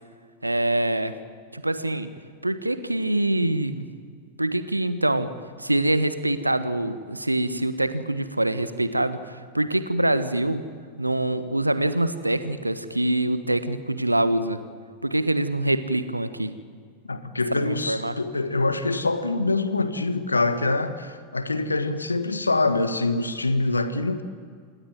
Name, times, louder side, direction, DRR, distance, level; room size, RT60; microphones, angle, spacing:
voice 1, 0.4-1.1 1.5-2.1 2.4-3.9 4.4-5.3 5.6-10.7 11.0-14.6 15.0-16.6 17.5-18.2, right 1 dB, 85° right, 12 dB, 1.4 m, -25 dB
voice 2, 17.1-24.2, left 3 dB, 80° left, 11 dB, 1.7 m, -25 dB
27.5 x 19.5 x 9.3 m, 2.1 s
figure-of-eight pair, 90°, 0 cm